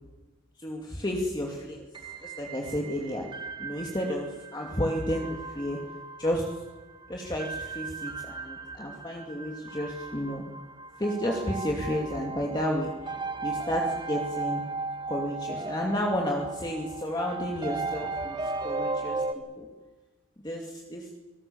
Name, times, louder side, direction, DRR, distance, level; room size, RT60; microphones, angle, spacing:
voice 1, 0.6-1.9 2.2-3.2 3.6-5.8 6.2-6.5 7.1-10.4 11.0-13.1 13.4-14.6 15.1-18.4 18.6-19.2 19.6-19.7 20.4-21.1, equal, 20° left, -1 dB, 2.5 m, -31 dB
sound 1, 1.9-19.3, right 3 dB, 25° right, 1.6 m, -36 dB
26.5 x 20.0 x 7.1 m, 1.2 s
head